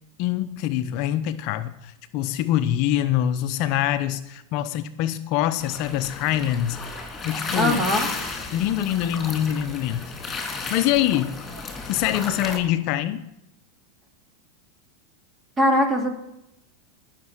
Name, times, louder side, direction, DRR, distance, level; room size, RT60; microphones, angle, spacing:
voice 1, 0.2-6.8 7.2-7.8 8.5-11.3 11.9-13.3, left 12 dB, 55° left, 10 dB, 0.8 m, -25 dB
sound 1, 5.6-12.6, left 3 dB, 20° left, 3.3 m, -33 dB
voice 2, 7.6-8.1 15.6-16.1, equal, 20° right, 4 dB, 2.8 m, -20 dB
18.0 x 6.7 x 6.0 m, 0.88 s
hypercardioid pair, 115°, 0 cm